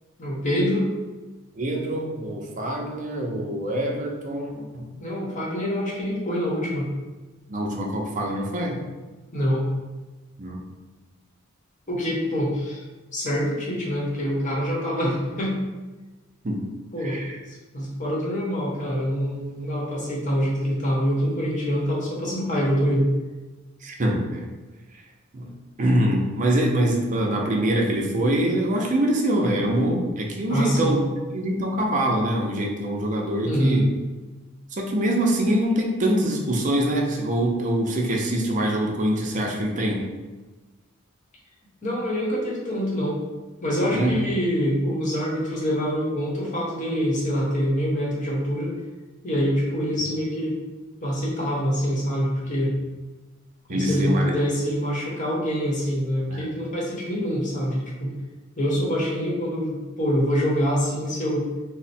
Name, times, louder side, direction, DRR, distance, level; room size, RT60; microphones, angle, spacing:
voice 1, 0.2-1.0 5.0-6.9 9.3-9.6 11.9-12.8 13.1-15.6 16.9-17.2 17.5-23.1 30.5-31.0 33.4-33.8 41.8-43.2 43.6-48.8 49.2-50.5 51.0-52.7 53.7-58.1 58.6-61.5, equal, 40° left, -4 dB, 0.9 m, -25 dB
voice 2, 1.6-4.9 7.5-8.8 10.4-10.6 16.4-16.6 17.0-17.4 23.8-24.5 24.9-25.0 25.3-25.5 25.8-31.0 31.3-33.9 34.7-40.0 43.9-44.2 53.7-54.4 56.3-56.6, right 1 dB, 40° right, 0 dB, 0.5 m, -24 dB
3.2 x 2.0 x 4.1 m, 1.2 s
head